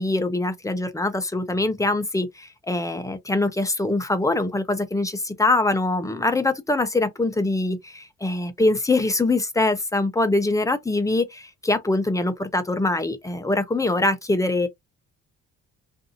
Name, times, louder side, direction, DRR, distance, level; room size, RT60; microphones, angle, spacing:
voice 1, 0.0-14.7, left 2 dB, 10° left, 0.6 m, -23 dB
2.6 x 2.5 x 2.6 m
cardioid pair, 90°, 30 cm